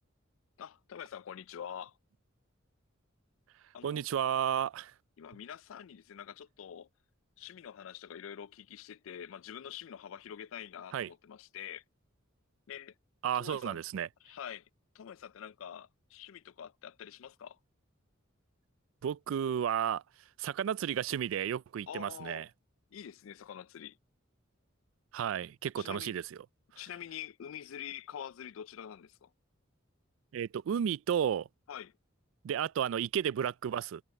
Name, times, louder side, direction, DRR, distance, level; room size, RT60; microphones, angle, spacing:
voice 1, 0.6-2.0 3.7-4.0 5.2-6.9 7.4-11.8 12.7-12.9 13.3-13.8 14.2-14.7 14.9-17.6 21.9-22.5 22.9-24.0 25.8-26.1 26.8-29.3 31.7-31.9, left 9 dB, 70° left, 0.4 m, -46 dB
voice 2, 3.8-4.9 10.9-11.1 13.2-14.1 19.0-20.0 20.4-22.5 25.1-26.4 30.3-31.5 32.4-34.0, right 9 dB, 70° right, 0.3 m, -32 dB
head